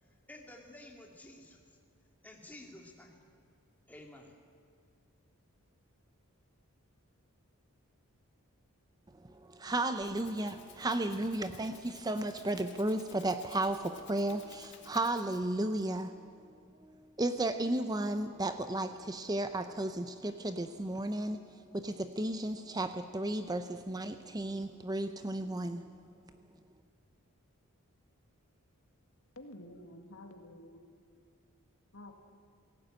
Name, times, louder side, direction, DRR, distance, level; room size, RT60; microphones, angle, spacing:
voice 1, 0.0-1.6 2.2-3.2 3.9-4.4, left 1 dB, 5° left, 0 dB, 2.2 m, -52 dB
voice 2, 9.2-16.1 16.8-21.4 21.7-25.9, right 1 dB, 15° right, 9 dB, 0.6 m, -34 dB
Rattle (instrument), 9.7-15.6, left 9 dB, 55° left, 2.0 m, -57 dB
voice 3, 29.4-30.8 31.9-32.1, left 1 dB, 70° left, 5 dB, 2.1 m, -50 dB
18.0 x 16.5 x 9.0 m, 2.3 s
head